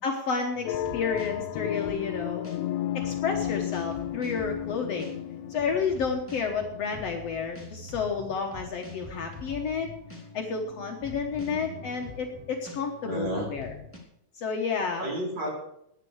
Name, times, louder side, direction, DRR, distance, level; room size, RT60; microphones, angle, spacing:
voice 1, 0.0-2.5 2.9-5.1 5.5-9.9 10.3-13.7 14.4-15.1, left 5 dB, 60° left, 3 dB, 2.1 m, -31 dB
sound 1, 0.5-14.0, left 3 dB, 5° left, 2.7 m, -45 dB
sound 2, 0.7-6.1, left 12 dB, 75° left, 1.7 m, -33 dB
voice 2, 11.4-11.8 13.0-13.5 15.0-15.5, right 1 dB, 35° right, -3 dB, 5.1 m, -32 dB
20.5 x 8.3 x 4.8 m, 0.76 s
omnidirectional pair, 3.5 m